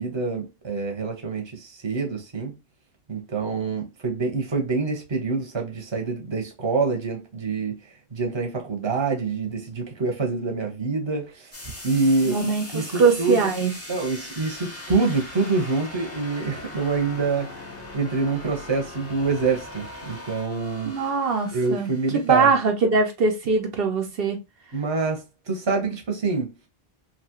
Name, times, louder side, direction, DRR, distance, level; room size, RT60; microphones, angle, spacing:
voice 1, 0.0-2.5 3.1-11.5 11.8-12.4 12.7-13.5 13.9-17.5 17.9-20.9 21.5-22.5 24.7-26.5, right 4 dB, 30° right, 0.8 m, -26 dB
sound 1, 11.5-22.5, left 2 dB, 15° left, 0.7 m, -40 dB
voice 2, 12.3-13.7 20.9-21.9 22.2-24.4, right 4 dB, 70° right, 0.8 m, -22 dB
2.8 x 2.4 x 2.9 m
omnidirectional pair, 1.0 m